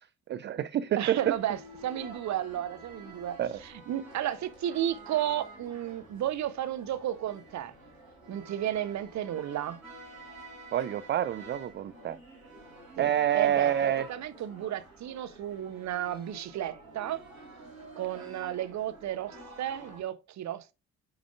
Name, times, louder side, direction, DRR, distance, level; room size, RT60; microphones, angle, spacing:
voice 1, 0.3-1.3 3.4-3.6 10.7-12.2 13.0-14.1, right 11 dB, 30° right, 0.4 m, -27 dB
voice 2, 1.0-7.7 8.3-9.8 13.0-17.2 18.0-20.7, right 11 dB, 45° right, 0.8 m, -33 dB
sound 1, 1.2-20.0, right 1 dB, 90° right, 2.1 m, -49 dB
8.7 x 5.0 x 2.4 m
figure-of-eight pair, 45°, 40 cm